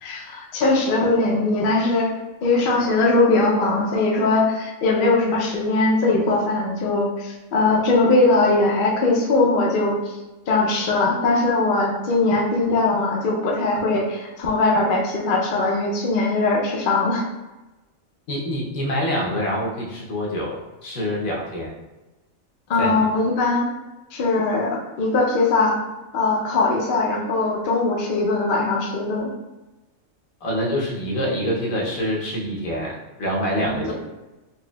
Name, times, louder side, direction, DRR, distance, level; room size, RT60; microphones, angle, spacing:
voice 1, 0.0-2.1 2.4-10.1 10.5-17.2 22.7-23.7 24.1-25.8 26.1-29.3 33.7-33.9, left 3 dB, 55° left, -1 dB, 0.6 m, -20 dB
voice 2, 18.3-21.7 22.8-22.9 30.4-33.9, equal, 80° left, -2 dB, 1.2 m, -26 dB
4.1 x 2.8 x 2.2 m, 1.1 s
omnidirectional pair, 1.4 m